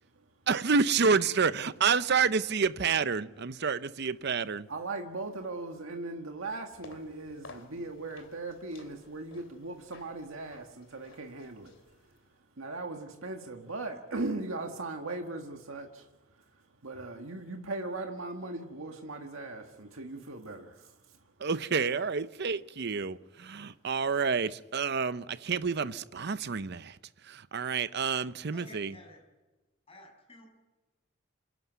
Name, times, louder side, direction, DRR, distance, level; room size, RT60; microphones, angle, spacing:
voice 1, 0.5-4.7 21.4-27.0 27.2-28.9, right 5 dB, 55° right, 0.7 m, -29 dB
voice 2, 4.7-12.1 12.6-21.3, right 2 dB, 80° right, 1.7 m, -39 dB
sound 1, 6.7-12.3, left 3 dB, 65° left, 2.8 m, -55 dB
voice 3, 28.5-29.2 29.9-30.5, left 1 dB, 30° left, 7.0 m, -52 dB
28.0 x 12.0 x 9.4 m
head